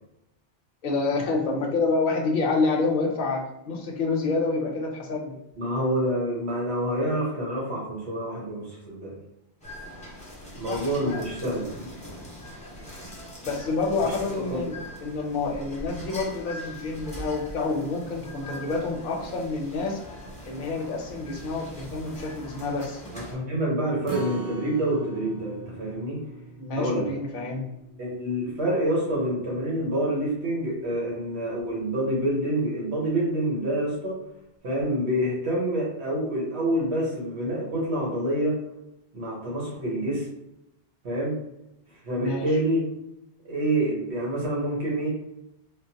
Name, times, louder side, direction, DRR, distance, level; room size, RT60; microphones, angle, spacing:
voice 1, 0.8-5.4 10.7-11.2 13.4-20.0 20.4-23.0 26.6-27.7 42.1-42.5, left 3 dB, 55° left, 0 dB, 0.8 m, -28 dB
voice 2, 5.6-9.1 10.6-11.9 14.0-14.1 14.5-14.7 23.1-26.2 26.7-27.1 28.0-34.2 34.6-38.6 39.1-40.3 41.0-41.3 42.0-42.8 43.4-45.1, right 1 dB, 80° right, -4 dB, 1.4 m, -27 dB
sound 1, 9.6-23.3, equal, 5° left, 0.8 m, -42 dB
Acoustic guitar, 24.1-30.4 30.8-30.9 31.3-31.4, right 2 dB, 30° right, 0.4 m, -41 dB
3.7 x 2.1 x 2.8 m, 0.85 s
omnidirectional pair, 1.1 m